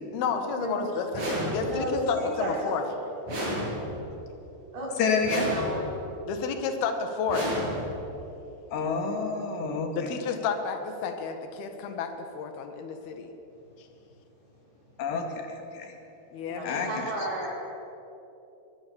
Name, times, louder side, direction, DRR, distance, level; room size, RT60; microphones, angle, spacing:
voice 1, 0.1-2.8 6.3-7.6 10.0-13.3 16.3-16.9, left 5 dB, 70° left, 6 dB, 3.5 m, -31 dB
sound 1, 1.1-2.0 3.3-4.2 5.2-6.1 7.3-8.2, equal, 45° right, 9.5 m, -32 dB
voice 2, 1.6-2.6 2.8-2.9 4.7-4.9 5.5-5.9 7.6-7.8 16.4-17.5, right 1 dB, 65° right, -4 dB, 7.8 m, -32 dB
voice 3, 5.0-5.4 8.7-10.1 15.0-16.0 16.6-17.1, left 5 dB, 85° left, 3 dB, 4.4 m, -29 dB
23.0 x 22.0 x 7.2 m, 3.0 s
omnidirectional pair, 4.8 m